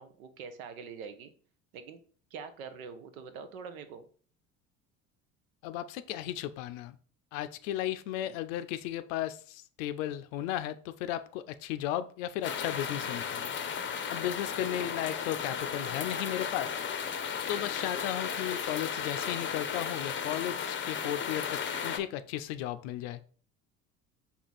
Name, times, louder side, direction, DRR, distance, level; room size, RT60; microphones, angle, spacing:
voice 1, 0.0-1.3 1.7-2.0 2.3-4.1 8.2-8.4 14.6-14.9, right 6 dB, 75° right, 10 dB, 0.7 m, -44 dB
voice 2, 5.6-7.0 7.3-13.5 13.8-23.2, left 12 dB, 65° left, 12 dB, 0.5 m, -35 dB
sound 1, 12.4-22.0, left 7 dB, 30° left, 0.6 m, -35 dB
4.4 x 2.8 x 4.0 m, 0.43 s
hypercardioid pair, 65°, 42 cm